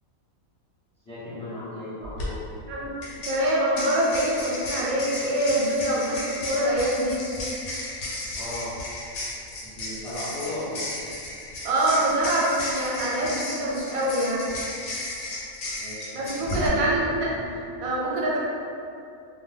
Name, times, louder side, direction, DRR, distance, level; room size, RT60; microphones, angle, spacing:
voice 1, 1.0-2.4 8.3-8.7 9.6-10.8 15.8-16.1 16.4-17.5, left 1 dB, 5° left, -12 dB, 0.9 m, -36 dB
sound 1, 2.0-2.3 3.0-16.7, left 1 dB, 85° left, 1.1 m, -34 dB
voice 2, 3.2-7.2 11.6-14.5 16.1-17.4 17.8-18.4, right 1 dB, 85° right, -5 dB, 1.1 m, -25 dB
2.6 x 2.3 x 3.2 m, 2.5 s
omnidirectional pair, 1.4 m